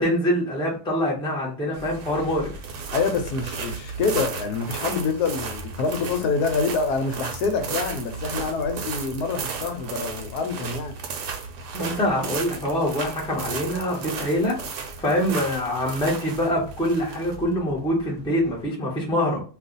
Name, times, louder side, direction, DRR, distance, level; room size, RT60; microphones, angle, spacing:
voice 1, 0.0-2.5 11.7-14.6 15.0-19.4, equal, 5° left, 0.7 m, -24 dB
sound 1, 1.7-18.6, right 5 dB, 75° right, 1.2 m, -34 dB
voice 2, 2.9-11.0, left 4 dB, 75° left, 1.1 m, -26 dB
2.7 x 2.4 x 3.8 m
omnidirectional pair, 1.8 m